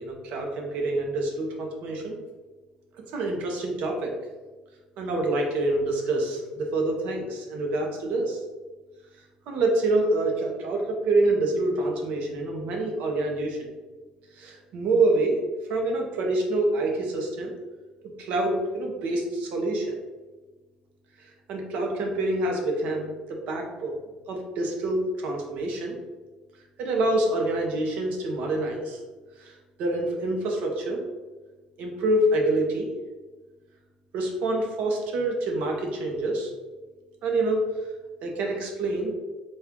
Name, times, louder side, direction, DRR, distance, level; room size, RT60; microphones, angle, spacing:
voice 1, 0.0-2.2 3.1-4.1 5.0-8.4 9.5-13.7 14.4-15.4 15.7-17.5 18.2-19.9 21.5-24.0 24.3-25.9 26.8-29.0 29.4-29.5 29.8-31.0 31.8-32.9 34.1-36.5 37.2-37.6 38.2-39.1, right 2 dB, 65° right, 1 dB, 0.8 m, -26 dB
4.2 x 2.4 x 3.6 m, 1.3 s
cardioid pair, 150°, 3 cm